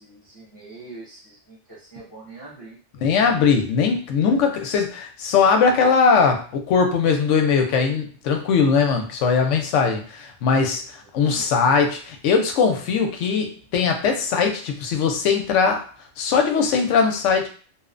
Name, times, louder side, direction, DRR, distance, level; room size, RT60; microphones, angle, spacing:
voice 1, 0.0-2.8 11.2-11.5, right 3 dB, 20° left, -8 dB, 0.7 m, -43 dB
voice 2, 3.0-15.8 16.2-17.5, left 5 dB, 85° left, 4 dB, 0.9 m, -20 dB
2.8 x 2.1 x 2.4 m, 0.40 s
omnidirectional pair, 1.2 m